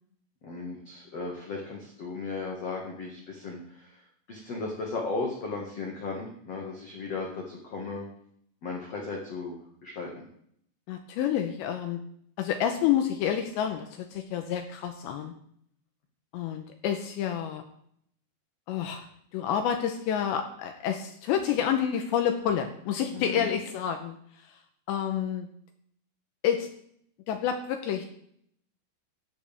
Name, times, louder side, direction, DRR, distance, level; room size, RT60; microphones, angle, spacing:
voice 1, 0.4-4.0 4.3-8.0 8.6-10.2 23.1-23.5, left 3 dB, 60° left, -1 dB, 1.6 m, -36 dB
voice 2, 10.9-12.0 12.4-15.3 16.3-17.6 18.7-19.1 19.3-24.2 24.9-25.5 26.4-26.7 27.3-28.1, left 9 dB, 80° left, 6 dB, 2.7 m, -29 dB
15.5 x 11.0 x 3.6 m, 0.67 s
omnidirectional pair, 6.0 m